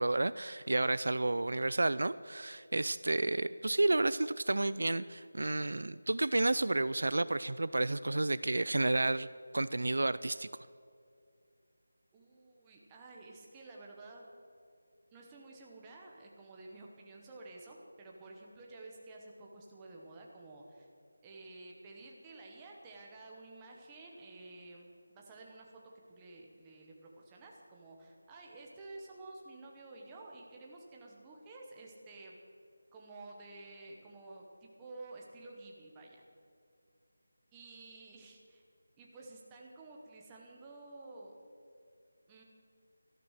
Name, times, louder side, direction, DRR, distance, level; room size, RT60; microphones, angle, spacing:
voice 1, 0.0-9.3 9.5-10.5, right 2 dB, 60° right, 16 dB, 0.3 m, -31 dB
voice 2, 12.1-14.3 15.1-20.9 21.2-25.7 26.1-32.4 32.9-36.2 37.5-38.6 39.0-41.3 42.3-42.4, right 2 dB, 5° right, -1 dB, 0.8 m, -51 dB
13.0 x 12.0 x 6.3 m, 2.4 s
figure-of-eight pair, 180°, 0 cm